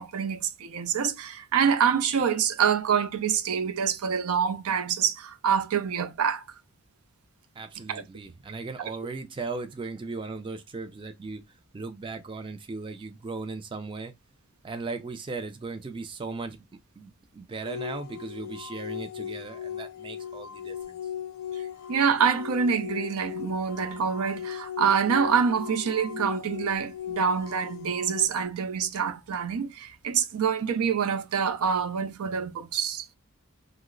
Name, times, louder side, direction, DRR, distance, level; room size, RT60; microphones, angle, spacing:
voice 1, 0.0-6.4 7.9-8.0 21.9-33.1, right 7 dB, 85° right, 0.4 m, -26 dB
voice 2, 7.6-14.1 14.6-16.7 17.0-21.0, right 3 dB, 25° right, 0.3 m, -37 dB
sound 1, 17.6-28.3, left 9 dB, 60° left, 0.4 m, -37 dB
3.0 x 2.0 x 3.6 m
head